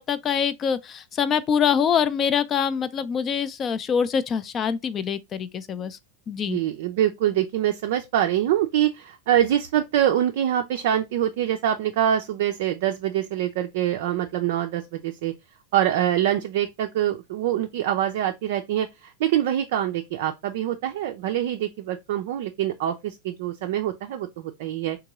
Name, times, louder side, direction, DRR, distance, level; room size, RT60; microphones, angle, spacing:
voice 1, 0.0-6.0 6.3-6.6, left 7 dB, 25° left, 0.4 m, -24 dB
voice 2, 6.4-15.3 15.7-25.0, right 11 dB, 50° right, 0.4 m, -25 dB
3.6 x 2.9 x 3.9 m
figure-of-eight pair, 90°, 0 cm